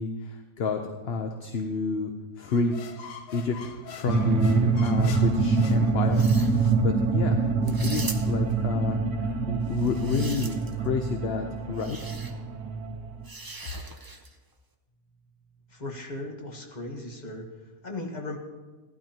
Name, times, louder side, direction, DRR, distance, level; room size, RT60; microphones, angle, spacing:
voice 1, 0.0-2.1 2.4-2.7 3.3-6.2 6.8-12.0, left 4 dB, 55° left, 5 dB, 0.8 m, -30 dB
sound 1, 2.4-6.5, left 8 dB, 75° left, 1.3 m, -44 dB
sound 2, 4.1-13.3, right 4 dB, 70° right, 1.2 m, -25 dB
sound 3, 6.0-6.7 7.6-8.5 9.7-10.9 11.8-12.3 13.2-14.3, right 2 dB, 25° right, 0.5 m, -40 dB
voice 2, 15.7-17.5 17.8-18.4, left 2 dB, 30° left, 1 dB, 1.5 m, -37 dB
16.5 x 12.0 x 2.9 m, 1.2 s
omnidirectional pair, 1.5 m